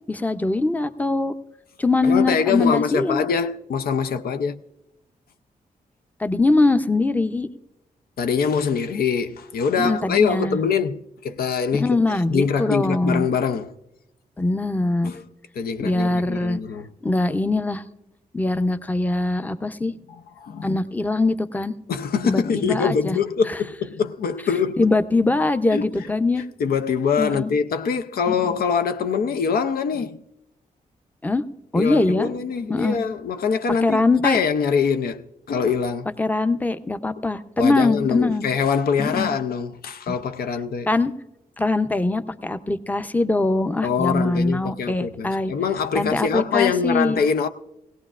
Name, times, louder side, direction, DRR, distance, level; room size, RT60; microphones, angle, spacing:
voice 1, 0.1-1.3 1.8-3.2 6.2-7.5 9.8-10.6 11.7-13.3 14.4-15.1 15.8-16.6 17.0-17.8 18.3-20.0 20.6-21.7 22.2-23.2 23.5-23.6 24.8-26.4 27.2-27.5 28.3-28.6 31.2-31.4 31.7-32.3 32.7-33.0 33.8-34.4 36.2-38.5 39.0-39.3 40.9-41.1 41.6-45.5 45.9-47.2, left 2 dB, 10° left, 0.6 m, -22 dB
voice 2, 2.0-4.6 8.2-11.9 12.3-13.7 15.0-15.2 15.6-16.9 20.1-20.7 21.9-24.9 25.7-25.9 26.6-30.2 31.8-36.1 37.6-40.9 43.8-47.5, left 6 dB, 80° left, 0.5 m, -24 dB
18.0 x 17.0 x 2.4 m
cardioid pair, 65°, 15 cm